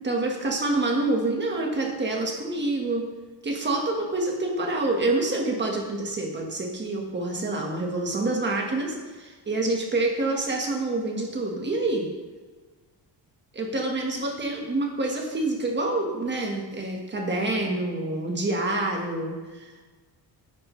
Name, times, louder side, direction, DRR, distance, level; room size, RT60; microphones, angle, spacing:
voice 1, 0.0-3.0 3.4-12.1 13.5-19.9, right 2 dB, 25° right, 0 dB, 1.5 m, -27 dB
12.5 x 10.5 x 3.2 m, 1.3 s
cardioid pair, 165°, 44 cm